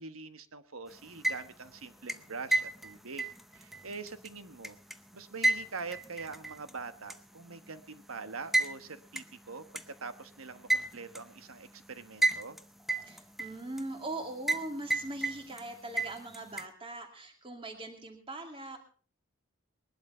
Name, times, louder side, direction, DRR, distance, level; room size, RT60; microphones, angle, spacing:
voice 1, 0.0-3.3 3.5-4.8 5.1-12.6, right 4 dB, 75° right, 11 dB, 1.3 m, -44 dB
sound 1, 1.0-1.7 2.1-5.0 5.4-6.7 7.1-7.2 8.5-8.7 9.2-9.3 9.8-9.9 10.7-11.2 12.2-12.6 12.9-13.8 14.5-14.7 14.9-15.6 16.0-16.7, right 2 dB, ahead, 0.6 m, -30 dB
voice 2, 13.0-18.8, right 2 dB, 25° right, 4 dB, 2.4 m, -41 dB
20.5 x 11.5 x 4.3 m, 0.39 s
head